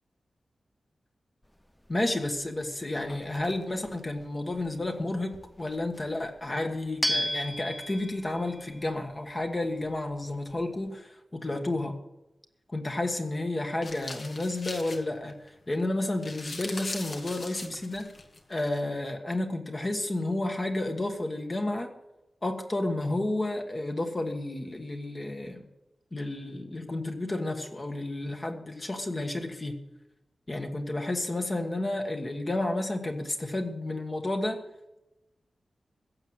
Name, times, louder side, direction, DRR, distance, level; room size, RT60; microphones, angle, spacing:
sound 1, 1.4-10.9, equal, 5° left, 0.4 m, -38 dB
voice 1, 1.9-12.0 12.7-18.1 18.5-21.9 22.4-25.6 26.1-29.8 30.5-34.6, left 2 dB, 25° left, 4 dB, 1.4 m, -31 dB
sound 2, 13.8-15.5 15.8-15.9 16.1-18.8, left 2 dB, 45° left, 1.8 m, -41 dB
15.5 x 7.6 x 7.9 m, 0.94 s
wide cardioid pair, 160°, 0 cm